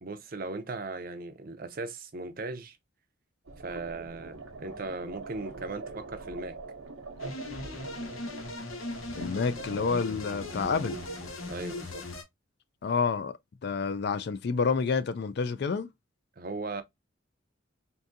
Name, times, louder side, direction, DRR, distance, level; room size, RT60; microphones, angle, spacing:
voice 1, 0.0-2.8 3.6-6.6 11.5-12.0 16.4-16.8, right 3 dB, 45° right, 0.5 m, -38 dB
sound 1, 3.5-12.0, right 3 dB, 90° right, 0.8 m, -44 dB
sound 2, 7.2-12.2, left 2 dB, 90° left, 1.0 m, -39 dB
voice 2, 9.1-11.0 12.8-15.9, left 5 dB, 55° left, 0.3 m, -29 dB
3.6 x 2.6 x 2.6 m
head